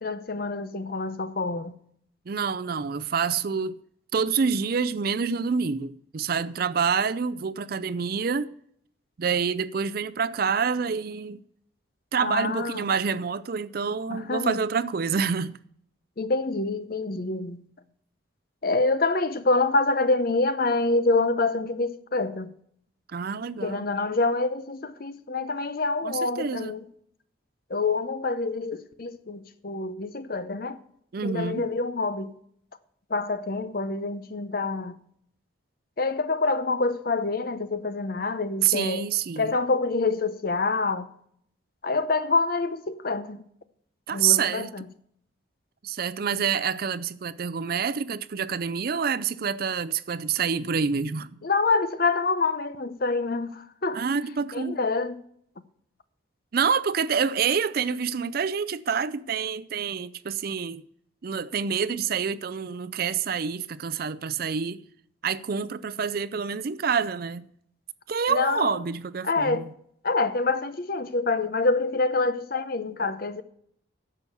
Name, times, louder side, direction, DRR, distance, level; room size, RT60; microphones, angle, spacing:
voice 1, 0.0-1.7 12.2-12.8 14.1-14.6 16.2-17.6 18.6-22.5 23.6-26.8 27.7-30.8 31.2-32.3 33.1-35.0 36.0-39.1 39.4-41.1 41.8-43.4 44.1-44.9 51.4-54.0 54.5-55.2 68.3-68.7 69.2-69.7 70.0-73.4, left 3 dB, 50° left, 0.7 m, -26 dB
voice 2, 2.3-3.8 4.1-8.5 9.2-11.4 12.1-15.6 23.1-23.9 26.0-26.8 31.1-31.7 38.6-39.6 44.1-44.7 45.8-51.4 53.9-54.8 56.5-60.9 61.2-64.8 65.2-67.5 68.1-69.7, right 6 dB, 50° right, 0.4 m, -27 dB
10.5 x 7.0 x 6.8 m
head